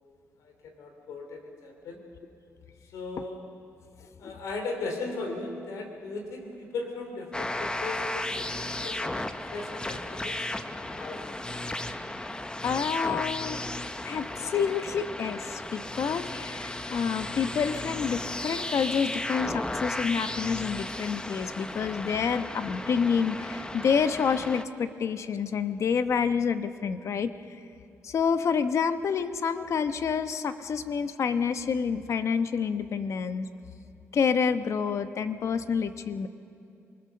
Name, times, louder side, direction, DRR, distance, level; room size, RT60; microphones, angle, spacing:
voice 1, 0.4-2.0 2.8-3.4 4.2-10.5 10.7-11.2, left 3 dB, 90° left, 3 dB, 2.9 m, -37 dB
sound 1, 7.3-24.6, left 1 dB, 15° left, 1.0 m, -35 dB
voice 2, 12.6-13.6 14.0-27.3 28.0-33.5 34.1-36.3, left 6 dB, 65° left, 10 dB, 1.0 m, -28 dB
26.5 x 20.0 x 6.8 m, 2.6 s
cardioid pair, 75°, 5 cm